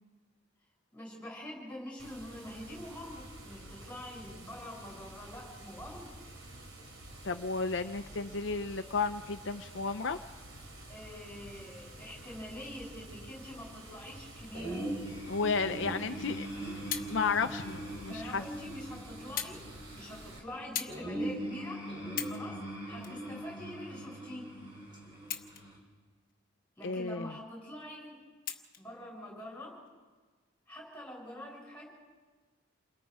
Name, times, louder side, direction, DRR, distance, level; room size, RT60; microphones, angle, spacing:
voice 1, 0.9-6.2 10.9-15.0 18.1-19.7 19.9-24.5 26.8-28.2 28.8-29.8 30.7-31.9, left 1 dB, 5° left, -3 dB, 6.8 m, -45 dB
Water, 2.0-20.4, right 1 dB, 80° right, 3.0 m, -50 dB
voice 2, 7.2-10.2 15.3-16.5 17.1-18.4 26.8-27.4, left 4 dB, 70° left, 7 dB, 0.6 m, -33 dB
sound 1, 14.5-25.8, right 1 dB, 25° right, 3.8 m, -41 dB
sound 2, 16.9-17.1 18.0-18.1 19.4-19.6 19.9-20.2 20.7-21.0 21.5-21.6 22.0-22.4 23.0-24.0 25.2-25.9 26.3-26.4 28.4-28.9 29.8-29.9, left 10 dB, 45° left, 1.1 m, -39 dB
29.0 x 21.5 x 4.8 m, 1.4 s
head